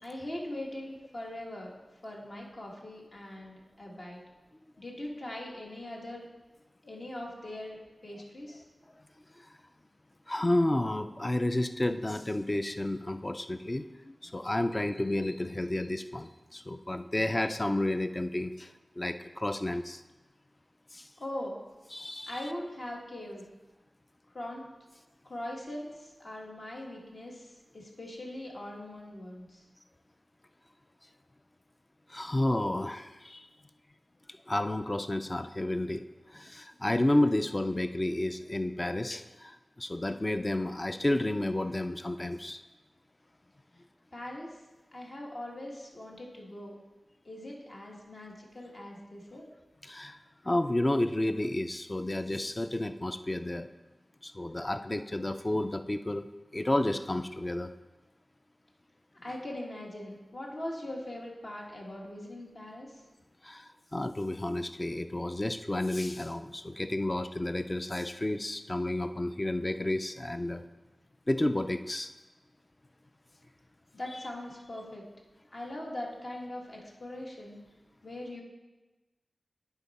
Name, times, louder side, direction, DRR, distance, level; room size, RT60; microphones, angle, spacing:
voice 1, 0.0-1.7 2.0-4.2 4.8-6.3 6.8-7.8 8.0-8.6 21.2-21.5 22.3-23.5 24.3-24.6 25.2-29.6 44.1-44.5 44.9-46.7 47.2-49.4 59.2-63.0 73.9-75.0 75.5-77.6 78.0-78.4, left 1 dB, 55° left, -2 dB, 1.6 m, -41 dB
voice 2, 10.3-18.7 19.0-20.0 20.9-21.1 21.9-22.4 32.1-33.5 34.5-36.0 36.3-42.6 49.8-50.2 50.4-53.7 54.2-56.3 56.5-57.7 63.4-70.6 71.3-72.1, left 1 dB, 25° left, 9 dB, 0.4 m, -31 dB
10.5 x 4.5 x 4.2 m, 1.1 s
wide cardioid pair, 75°, 0 cm